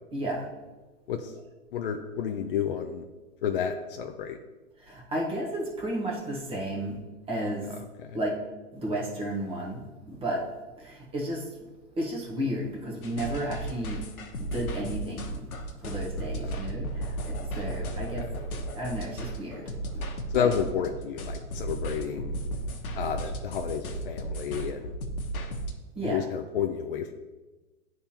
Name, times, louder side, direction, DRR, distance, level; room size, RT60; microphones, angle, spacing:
voice 1, 0.1-0.5 4.8-7.0 7.3-7.7 8.1-8.3 8.7-10.4 10.8-11.5 11.9-14.1 14.4-18.3 18.7-19.6 19.9-20.1 20.3-20.5 26.0-26.2, right 1 dB, 15° right, -3 dB, 1.1 m, -33 dB
voice 2, 1.7-3.0 3.4-4.4 8.0-8.2 16.4-16.6 18.1-18.4 20.3-22.3 23.0-24.9 26.0-27.1, left 8 dB, 45° left, 5 dB, 0.4 m, -31 dB
sound 1, 13.0-25.7, right 1 dB, 80° left, 1.0 m, -35 dB
10.5 x 3.5 x 2.8 m, 1.2 s
hypercardioid pair, 140°, 43 cm